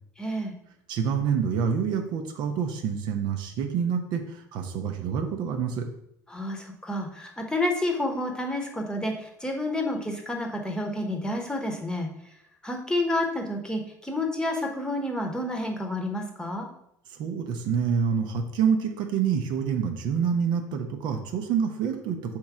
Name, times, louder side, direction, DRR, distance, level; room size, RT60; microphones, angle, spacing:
voice 1, 0.2-0.5 6.3-12.1 12.6-16.7, left 1 dB, 10° left, 2 dB, 1.0 m, -29 dB
voice 2, 0.9-5.8 17.1-22.2, right 7 dB, 55° right, 5 dB, 0.6 m, -27 dB
3.6 x 3.0 x 4.8 m, 0.76 s
hypercardioid pair, 65°, 9 cm